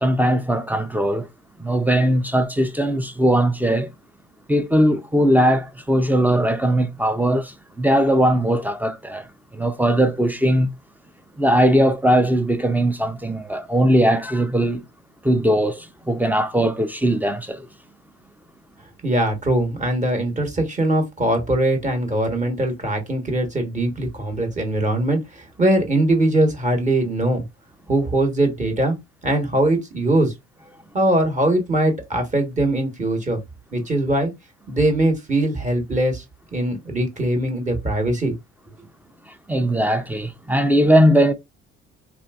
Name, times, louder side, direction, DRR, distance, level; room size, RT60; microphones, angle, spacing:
voice 1, 0.0-1.3 1.6-3.9 4.5-10.7 11.4-14.8 15.2-17.7 39.3-41.3, right 1 dB, 5° right, 0.4 m, -19 dB
voice 2, 19.0-27.4 27.9-29.0 29.2-30.3 30.9-33.4 33.7-34.3 34.7-36.2 36.5-38.3, right 1 dB, 25° right, 1.1 m, -21 dB
3.4 x 2.5 x 2.3 m
supercardioid pair, 75°, 32 cm